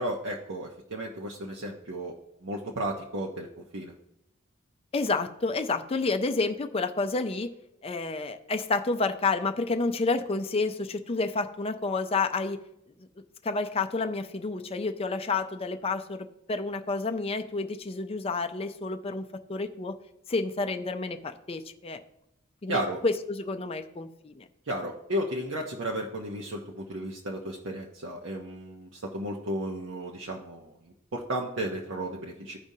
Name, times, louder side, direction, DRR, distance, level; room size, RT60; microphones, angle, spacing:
voice 1, 0.0-2.2 2.4-3.9 22.7-23.0 24.7-32.6, right 1 dB, 60° right, -1 dB, 0.8 m, -34 dB
voice 2, 4.9-7.5 7.8-12.6 13.4-20.0 20.3-22.0 22.6-24.5, left 3 dB, 30° left, 8 dB, 0.4 m, -30 dB
15.0 x 5.1 x 2.7 m, 0.83 s
head